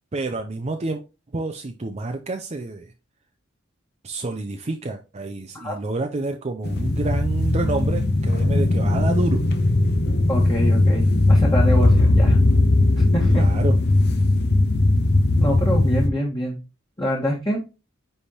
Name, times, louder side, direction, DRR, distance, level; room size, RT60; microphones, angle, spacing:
voice 1, 0.1-1.0 1.3-2.9 4.0-9.4 13.2-13.8, right 2 dB, 35° right, 0.6 m, -28 dB
sound 1, 6.6-16.1, left 2 dB, 55° left, 0.7 m, -18 dB
voice 2, 10.3-12.4 13.0-13.5 15.4-16.6 17.0-17.6, equal, 20° left, 1.5 m, -25 dB
9.6 x 3.4 x 2.9 m
head